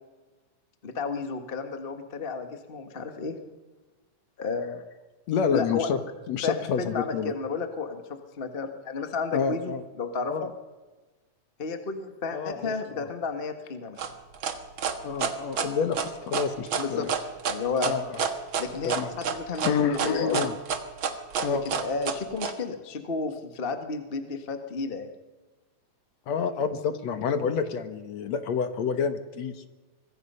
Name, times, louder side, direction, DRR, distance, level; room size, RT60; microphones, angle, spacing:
voice 1, 0.8-3.3 4.4-4.8 5.5-5.9 6.4-8.0 8.4-10.5 11.6-14.0 16.8-17.1 17.5-17.9 18.6-20.4 21.6-25.1, left 4 dB, 30° left, 6 dB, 1.1 m, -32 dB
voice 2, 5.3-6.0 6.3-7.3 9.3-9.8 10.3-10.5 12.3-13.1 15.0-17.1 17.8-18.2 18.8-19.1 19.6-20.5 21.4-21.8 26.3-29.7, left 6 dB, 65° left, 9 dB, 2.4 m, -28 dB
sound 1, 14.0-22.5, right 6 dB, 50° right, 1.9 m, -29 dB
25.5 x 21.5 x 5.6 m, 1.2 s
omnidirectional pair, 3.5 m